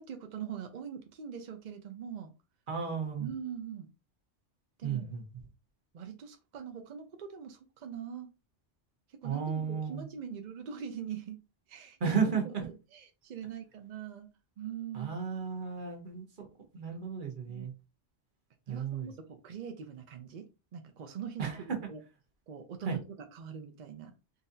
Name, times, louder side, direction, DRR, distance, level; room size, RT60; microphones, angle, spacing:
voice 1, 0.0-2.3 3.2-3.9 4.8-5.1 5.9-8.3 9.2-11.4 11.7-14.3 14.6-15.2 17.5-17.7 18.7-22.0 22.5-23.0 23.3-24.1, right 7 dB, 60° right, 5 dB, 0.4 m, -42 dB
voice 2, 2.7-3.3 4.8-5.2 9.2-10.0 12.0-12.7 14.9-16.5 16.7-17.7 18.7-19.1 21.4-21.6 22.9-23.0, right 6 dB, 45° right, 3 dB, 1.1 m, -33 dB
3.9 x 2.6 x 2.6 m, 0.28 s
omnidirectional pair, 1.3 m